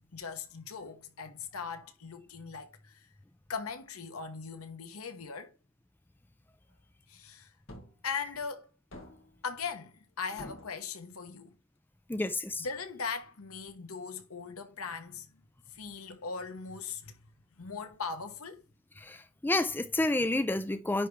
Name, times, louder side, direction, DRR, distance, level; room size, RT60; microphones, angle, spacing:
voice 1, 0.1-3.1 3.5-5.5 7.1-7.5 8.0-8.7 9.4-11.5 12.6-15.3 15.7-17.1 17.6-18.6, left 5 dB, 85° left, 1.1 m, -39 dB
sound 1, 7.7-8.0 8.9-9.4 10.4-10.9, left 1 dB, 60° left, 1.9 m, -47 dB
voice 2, 12.1-12.7 19.0-21.1, left 2 dB, 10° left, 0.4 m, -30 dB
10.0 x 3.5 x 3.2 m
head